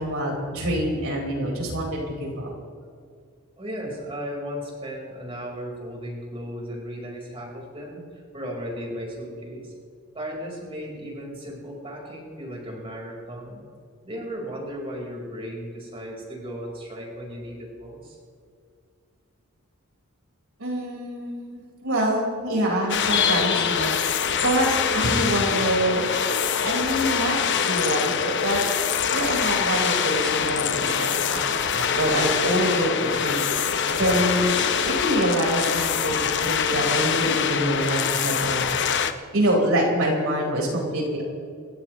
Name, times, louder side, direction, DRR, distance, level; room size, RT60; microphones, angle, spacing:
voice 1, 0.0-2.5 20.6-24.7 24.9-26.0 26.6-27.4 27.6-28.6 29.1-33.4 33.9-34.6 34.8-38.8 39.3-41.2, right 1 dB, 75° right, -2 dB, 4.9 m, -25 dB
voice 2, 3.6-9.7 10.1-13.6 14.0-18.2, equal, 25° right, -2 dB, 4.6 m, -35 dB
sound 1, 22.9-39.1, left 7 dB, 55° left, 0.9 m, -24 dB
28.0 x 14.5 x 3.2 m, 2.2 s
head